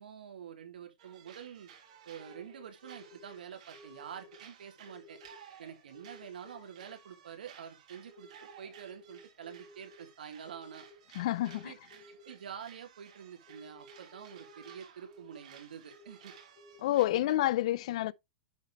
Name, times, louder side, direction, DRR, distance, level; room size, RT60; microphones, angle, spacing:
voice 1, 0.0-1.7 2.0-5.2 5.6-8.3 8.6-10.8 11.4-11.8 12.1-16.3 17.1-17.5, right 8 dB, 85° right, 3.1 m, -47 dB
sound 1, 1.0-17.1, right 8 dB, 50° right, 2.7 m, -57 dB
sound 2, 1.9-3.4 3.7-4.4 4.7-5.4 5.9-7.0 8.1-10.1 10.4-11.0 11.4-12.4 13.5-14.7 15.0-15.6 15.9-17.1, left 2 dB, 20° left, 1.8 m, -56 dB
voice 2, 11.2-11.7 16.8-18.1, left 15 dB, 45° left, 0.4 m, -29 dB
10.5 x 4.5 x 3.4 m
hypercardioid pair, 175°, 5 cm